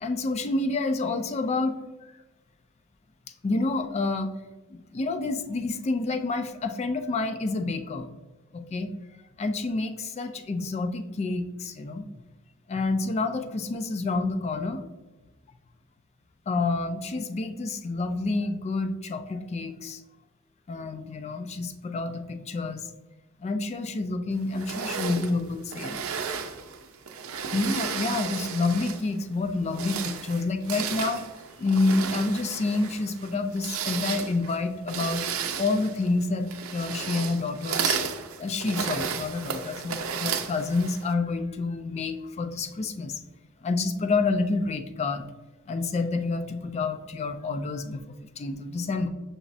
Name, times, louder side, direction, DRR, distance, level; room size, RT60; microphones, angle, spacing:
voice 1, 0.0-2.1 3.4-4.3 4.7-8.1 8.5-8.9 9.4-12.1 12.7-14.9 16.5-20.0 20.7-22.9 23.4-26.0 27.5-31.2 31.6-35.2 35.6-38.0 38.4-43.2 43.6-45.3 45.7-49.1, left 3 dB, 30° left, 8 dB, 0.3 m, -28 dB
sound 1, 24.6-29.1 29.6-41.1, right 6 dB, 80° right, 0.5 m, -33 dB
5.9 x 3.0 x 2.6 m, 1.1 s
head